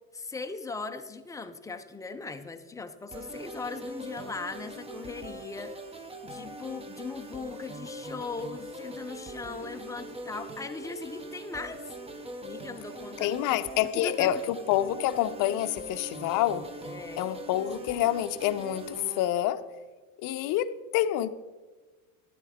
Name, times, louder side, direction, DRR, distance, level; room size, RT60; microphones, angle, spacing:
voice 1, 0.1-11.9 12.4-13.6 13.9-14.4 16.9-17.3, left 4 dB, 10° left, 0.3 m, -39 dB
sound 1, 3.1-19.3, right 1 dB, 15° right, 0.8 m, -42 dB
voice 2, 13.2-16.8 17.2-19.6 20.2-21.3, left 12 dB, 50° left, 0.6 m, -27 dB
12.0 x 10.0 x 3.6 m
supercardioid pair, 120°, 44 cm